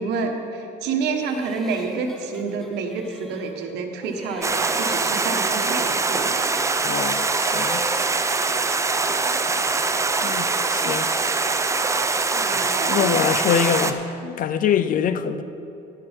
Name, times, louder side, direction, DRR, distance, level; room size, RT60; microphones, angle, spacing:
voice 1, 0.0-6.5 9.0-9.3 12.3-13.2, right 4 dB, 85° right, 1.4 m, -29 dB
sound 1, 1.0-3.7 4.0-6.6 7.0-10.8, equal, ahead, 1.0 m, -42 dB
Stream, 4.4-13.9, right 3 dB, 15° right, 0.6 m, -23 dB
voice 2, 6.8-7.8 10.2-11.1 12.5-15.4, left 8 dB, 55° left, 0.6 m, -24 dB
11.5 x 11.5 x 4.5 m
cardioid pair, 110°, 17 cm